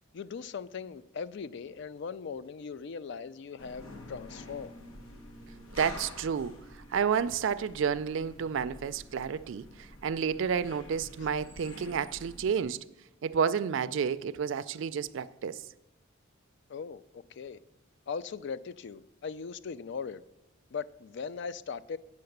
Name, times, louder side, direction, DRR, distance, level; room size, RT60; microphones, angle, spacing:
voice 1, 0.1-4.7 16.7-17.0 17.4-17.6 18.1-20.2 20.7-22.0, left 5 dB, 60° left, 0.4 m, -39 dB
sound 1, 3.6-12.7, left 1 dB, 85° left, 1.2 m, -48 dB
voice 2, 5.7-12.8 13.2-15.6, right 7 dB, 65° right, 0.3 m, -31 dB
8.5 x 5.8 x 6.5 m
head